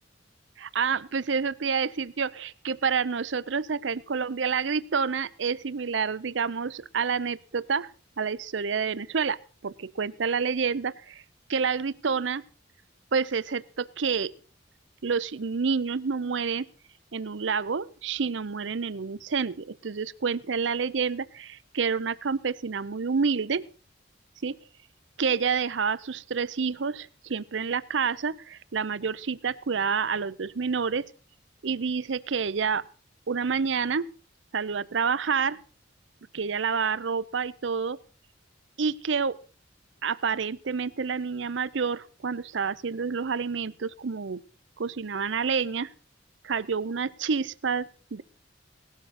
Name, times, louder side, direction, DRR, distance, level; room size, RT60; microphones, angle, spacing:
voice 1, 0.6-7.9 8.2-11.2 11.5-12.4 13.1-14.3 15.0-16.6 17.1-23.6 24.4-24.6 25.2-31.1 31.6-32.9 33.3-34.1 34.5-35.6 36.3-38.0 38.8-39.4 40.0-44.4 44.8-45.9 46.4-48.2, right 5 dB, 70° right, 17 dB, 0.6 m, -28 dB
18.0 x 13.0 x 4.2 m, 0.38 s
head